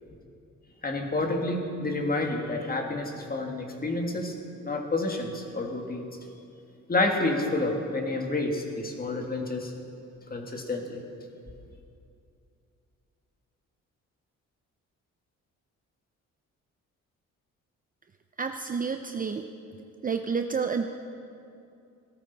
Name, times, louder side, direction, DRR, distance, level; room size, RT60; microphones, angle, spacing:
voice 1, 0.8-4.3 4.6-6.1 6.9-9.7 10.3-11.0, left 2 dB, 30° left, 2 dB, 1.9 m, -29 dB
voice 2, 18.4-19.5 20.0-20.8, right 5 dB, 30° right, 6 dB, 0.6 m, -29 dB
17.5 x 13.0 x 4.1 m, 2.5 s
cardioid pair, 90°, 30 cm